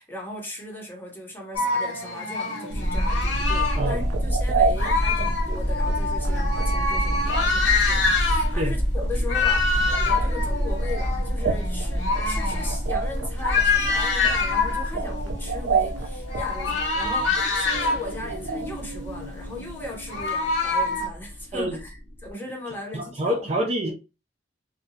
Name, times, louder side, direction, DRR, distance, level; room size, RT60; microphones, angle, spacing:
voice 1, 0.0-23.5, left 2 dB, 10° left, 0.7 m, -38 dB
sound 1, 1.5-3.9 4.8-8.6 9.1-21.1, left 4 dB, 80° left, 1.1 m, -26 dB
sound 2, 2.7-22.3, equal, 50° left, 0.7 m, -28 dB
sound 3, 3.5-18.8 19.1-19.5 19.8-19.9 20.1-20.3, right 5 dB, 90° right, 0.4 m, -32 dB
voice 2, 22.9-23.9, equal, 35° right, 0.5 m, -26 dB
2.7 x 2.2 x 2.7 m
head